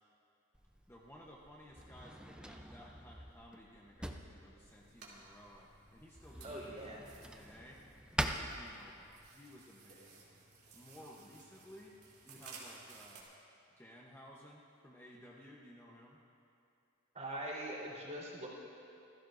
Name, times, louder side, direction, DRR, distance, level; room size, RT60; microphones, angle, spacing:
Drawer open or close, 0.5-9.3, right 1 dB, 5° right, 0.6 m, -45 dB
voice 1, 0.9-7.8 8.2-10.4 10.7-12.0 12.2-13.3 13.8-16.2, equal, 10° left, -3 dB, 0.9 m, -57 dB
sound 1, 4.6-13.2, right 4 dB, 50° right, 2.9 m, -58 dB
voice 2, 6.4-7.1 17.1-18.5, right 1 dB, 35° right, -5 dB, 3.8 m, -42 dB
27.0 x 15.5 x 2.6 m, 2.6 s
head